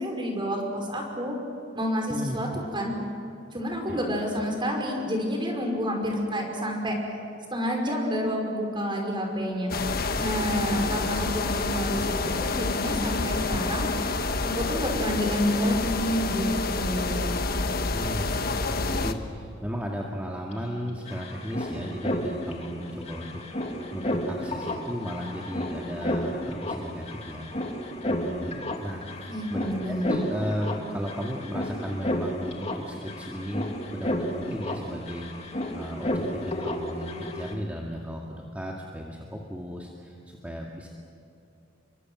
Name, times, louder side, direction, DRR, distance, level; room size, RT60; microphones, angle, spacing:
voice 1, 0.0-1.4 1.7-2.5 2.7-2.9 3.5-7.0 7.5-9.7 10.2-13.9 14.4-16.5 16.8-17.4 29.3-30.1, equal, 25° right, 1 dB, 5.4 m, -29 dB
voice 2, 2.1-2.6 3.9-4.0 10.1-10.2 17.9-40.9, equal, 10° right, -2 dB, 2.2 m, -35 dB
sound 1, 9.7-19.1, left 3 dB, 55° left, 1.3 m, -28 dB
sound 2, 20.5-20.6 20.8-37.5, left 1 dB, 35° left, 2.4 m, -32 dB
30.0 x 24.0 x 6.3 m, 2.6 s
head